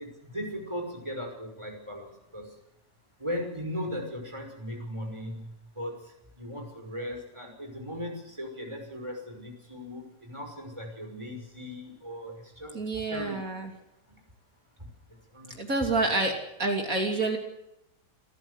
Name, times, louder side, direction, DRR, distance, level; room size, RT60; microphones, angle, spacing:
voice 1, 0.0-2.5 3.2-5.9 6.4-12.8 13.1-13.6 15.3-15.6 15.8-16.0, equal, 15° right, 2 dB, 5.8 m, -38 dB
voice 2, 12.7-13.7 15.6-17.4, right 2 dB, 50° right, 3 dB, 3.5 m, -28 dB
27.5 x 14.5 x 8.2 m, 0.86 s
omnidirectional pair, 1.9 m